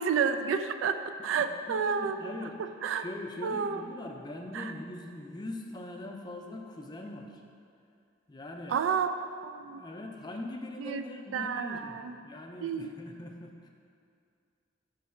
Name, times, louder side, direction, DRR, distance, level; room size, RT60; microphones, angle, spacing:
voice 1, 0.0-3.0 3.4-3.8 4.5-4.7 8.7-9.8 10.8-11.0 11.3-12.2 12.6-12.9, right 6 dB, 85° right, 10 dB, 0.3 m, -31 dB
voice 2, 1.4-2.6 2.9-7.4 8.3-8.8 9.6-13.7, left 1 dB, 20° left, 2 dB, 0.4 m, -42 dB
5.8 x 3.1 x 5.6 m, 2.3 s
head